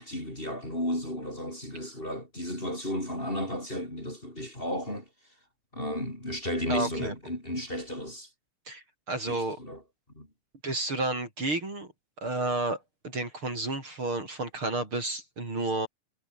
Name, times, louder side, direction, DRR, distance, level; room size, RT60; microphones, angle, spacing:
voice 1, 0.0-5.1 5.7-8.3 9.3-9.8 10.1-10.3, left 1 dB, 15° left, 7.2 m, -34 dB
voice 2, 6.7-7.1 8.7-9.6 10.6-11.9 12.2-15.9, right 2 dB, 40° right, 6.7 m, -31 dB
omnidirectional pair, 3.5 m